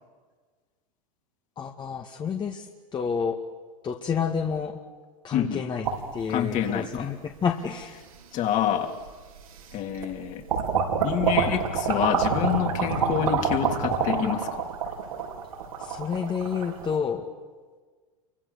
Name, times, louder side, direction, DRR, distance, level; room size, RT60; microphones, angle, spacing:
voice 1, 1.6-3.4 3.8-4.8 5.2-5.9 6.1-7.9 15.8-17.3, left 6 dB, 25° left, 3 dB, 2.0 m, -29 dB
voice 2, 5.3-5.6 6.3-7.1 8.3-8.9 9.7-10.4 11.0-14.6, left 9 dB, 45° left, 3 dB, 3.4 m, -27 dB
sound 1, 5.8-7.0 7.8-7.9 9.1-9.2 9.6-10.1 10.5-17.0, right 6 dB, 85° right, 5.1 m, -27 dB
29.0 x 24.5 x 7.1 m, 1.5 s
hypercardioid pair, 100°, 18 cm